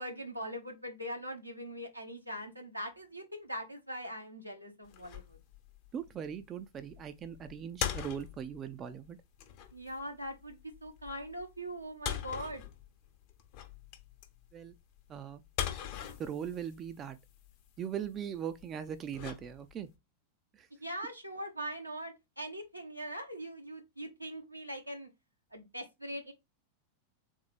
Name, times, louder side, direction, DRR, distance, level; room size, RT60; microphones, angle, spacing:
voice 1, 0.0-5.4 9.7-12.6 20.8-25.1 25.5-26.3, equal, 90° right, 1.0 m, -41 dB
sound 1, 4.8-19.9, left 10 dB, 45° left, 0.9 m, -43 dB
voice 2, 5.9-9.2 14.5-14.8 15.1-15.4 16.2-17.2 17.8-19.9 20.5-20.7, right 8 dB, 30° right, 0.4 m, -40 dB
3.6 x 3.5 x 3.2 m
figure-of-eight pair, 90°, 0 cm